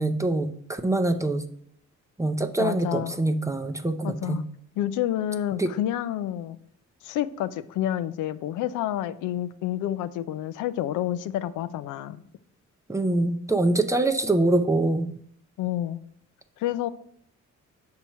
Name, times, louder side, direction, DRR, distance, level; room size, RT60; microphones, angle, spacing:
voice 1, 0.0-1.4 2.2-4.4 5.6-5.7 12.9-15.1, right 2 dB, 10° right, 6 dB, 0.5 m, -24 dB
voice 2, 2.6-3.2 4.0-4.4 4.8-6.6 7.0-12.2 15.6-16.0 16.6-16.9, left 12 dB, 80° left, 13 dB, 0.5 m, -29 dB
6.1 x 2.9 x 5.5 m, 0.64 s
cardioid pair, 90°, 30 cm